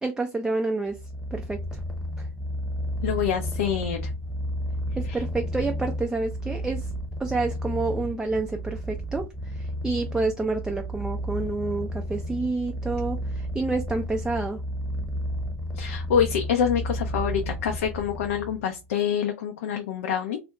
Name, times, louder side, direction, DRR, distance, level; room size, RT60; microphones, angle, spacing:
voice 1, 0.0-1.0 1.3-1.6 2.2-2.3 5.0-6.9 7.2-14.6, right 3 dB, 10° right, 4 dB, 0.3 m, -29 dB
Purr, 0.9-18.6, equal, 5° left, 1.0 m, -32 dB
voice 2, 3.0-4.0 5.1-5.2 15.8-20.4, left 8 dB, 70° left, 4 dB, 0.4 m, -26 dB
2.4 x 2.0 x 2.9 m, 0.25 s
hypercardioid pair, 80°, 8 cm